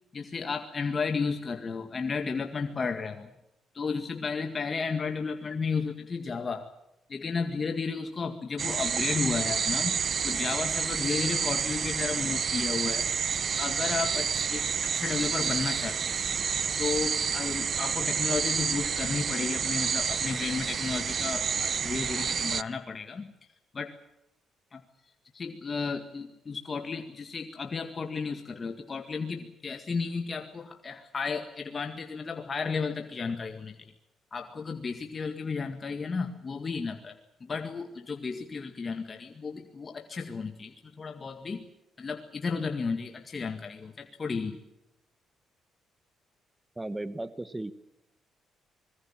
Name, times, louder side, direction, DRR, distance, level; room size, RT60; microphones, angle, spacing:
voice 1, 0.1-3.3 3.7-6.7 7.1-13.1 13.6-14.7 15.0-16.2 16.8-23.3 23.7-23.9 24.7-24.8 25.3-33.9 34.3-37.1 37.4-41.7 42.0-44.6, left 5 dB, 35° left, 5 dB, 2.0 m, -33 dB
sound 1, 8.6-22.6, right 6 dB, 50° right, 0.8 m, -29 dB
voice 2, 46.8-47.7, right 2 dB, 15° right, 13 dB, 1.2 m, -35 dB
25.0 x 21.5 x 7.4 m, 0.85 s
cardioid pair, 90°, 0 cm